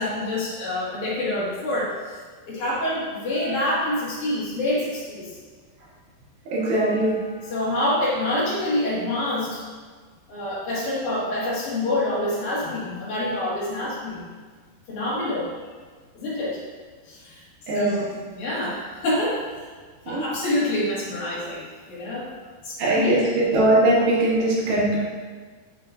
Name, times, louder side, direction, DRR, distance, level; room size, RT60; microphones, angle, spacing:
voice 1, 0.0-2.2 2.5-5.3 6.6-6.9 7.4-9.6 10.3-14.3 14.9-15.5 16.1-16.6 17.1-17.4 17.7-19.4 20.1-22.3 22.6-23.2, left 1 dB, 55° left, -8 dB, 2.8 m, -27 dB
voice 2, 6.5-7.2 17.7-17.9 20.1-20.2 22.8-25.0, right 1 dB, 75° right, -7 dB, 3.9 m, -20 dB
8.0 x 7.3 x 2.6 m, 1.5 s
omnidirectional pair, 5.0 m